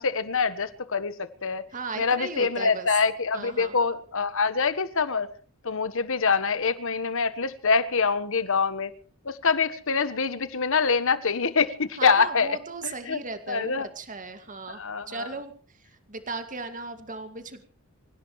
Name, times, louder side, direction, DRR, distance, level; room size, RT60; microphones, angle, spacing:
voice 1, 0.0-1.7 2.0-5.3 5.6-8.9 9.2-12.6 13.1-13.2 13.5-13.9 14.8-15.3, left 5 dB, 65° left, 1.4 m, -25 dB
voice 2, 1.7-2.9 3.3-3.8 12.0-17.6, right 4 dB, 40° right, 2.3 m, -37 dB
26.0 x 16.5 x 3.3 m
head